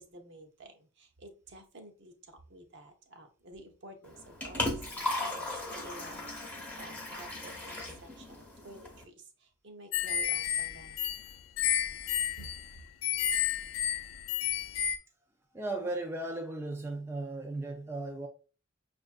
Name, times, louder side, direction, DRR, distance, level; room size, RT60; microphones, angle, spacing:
voice 1, 0.0-6.3 6.8-11.0 12.4-12.5, right 1 dB, 60° right, 0.8 m, -51 dB
Liquid, 4.0-9.0, left 2 dB, 10° left, 0.9 m, -37 dB
sound 1, 9.9-15.0, left 9 dB, 75° left, 0.4 m, -31 dB
voice 2, 15.5-18.3, right 2 dB, 10° right, 0.5 m, -36 dB
6.1 x 2.5 x 2.4 m
head